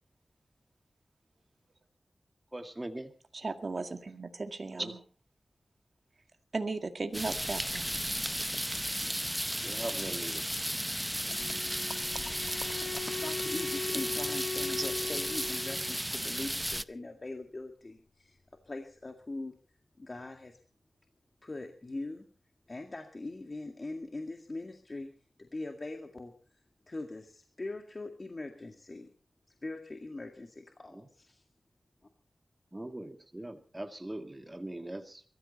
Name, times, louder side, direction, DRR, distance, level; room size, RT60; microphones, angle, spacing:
voice 1, 2.5-3.1 4.8-5.0 9.6-10.5 30.9-31.1 32.7-35.2, right 1 dB, 20° right, 6 dB, 2.0 m, -40 dB
voice 2, 3.4-4.8 6.5-7.8, right 3 dB, 60° right, 6 dB, 2.0 m, -36 dB
sound 1, 7.1-16.8, equal, 5° right, 0.7 m, -34 dB
Bowed string instrument, 11.3-16.0, left 4 dB, 80° left, 1.2 m, -39 dB
voice 3, 11.9-18.4 18.7-19.5 20.0-20.6 21.4-22.2 22.7-25.1 25.4-26.3 26.9-29.1 29.6-31.4, left 2 dB, 45° left, 4 dB, 2.1 m, -42 dB
22.5 x 14.5 x 4.2 m, 0.39 s
cardioid pair, 55°, 0 cm